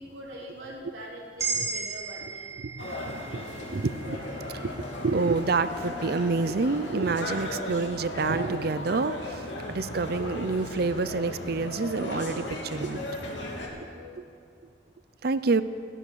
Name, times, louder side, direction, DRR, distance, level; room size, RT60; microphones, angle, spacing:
voice 1, 0.0-2.5 13.5-14.2, equal, 90° right, -5 dB, 4.4 m, -43 dB
sound 1, 1.4-5.7, right 4 dB, 15° right, 2.9 m, -36 dB
voice 2, 2.6-4.2 4.4-13.1 13.7-13.9 15.2-15.6, right 4 dB, 55° right, 13 dB, 0.6 m, -28 dB
sound 2, 2.8-13.7, left 1 dB, 75° left, 2.8 m, -36 dB
Mallet percussion, 5.7-8.2, left 7 dB, 15° left, 0.6 m, -46 dB
16.5 x 11.0 x 6.9 m, 2.4 s
head